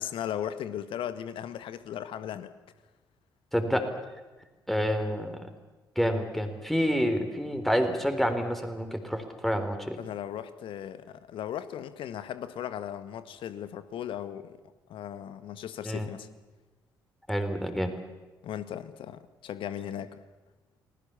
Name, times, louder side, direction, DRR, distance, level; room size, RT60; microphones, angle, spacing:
voice 1, 0.0-2.5 10.0-14.6 14.9-16.3 18.4-20.2, left 10 dB, 55° left, 13 dB, 1.5 m, -37 dB
voice 2, 3.5-3.9 4.7-5.4 6.0-10.0 15.8-16.1 17.3-17.9, equal, ahead, 6 dB, 4.0 m, -28 dB
28.5 x 20.0 x 7.1 m, 1.2 s
figure-of-eight pair, 45°, 11 cm